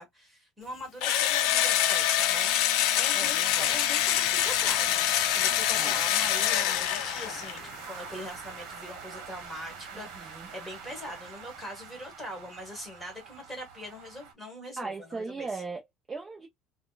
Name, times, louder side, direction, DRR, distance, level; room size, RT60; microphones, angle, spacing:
voice 1, 0.0-5.0 5.3-7.6 7.9-15.5, left 1 dB, ahead, 1.5 m, -42 dB
Engine / Drill, 1.0-7.6, left 12 dB, 65° left, 0.5 m, -25 dB
sound 1, 1.7-14.3, right 5 dB, 60° right, 1.1 m, -45 dB
voice 2, 3.1-3.8 5.8-6.0 9.9-10.5 14.8-16.5, right 4 dB, 15° right, 0.5 m, -39 dB
sound 2, 4.2-9.7, left 5 dB, 35° left, 0.7 m, -48 dB
4.0 x 2.1 x 2.4 m
cardioid pair, 170°, 0 cm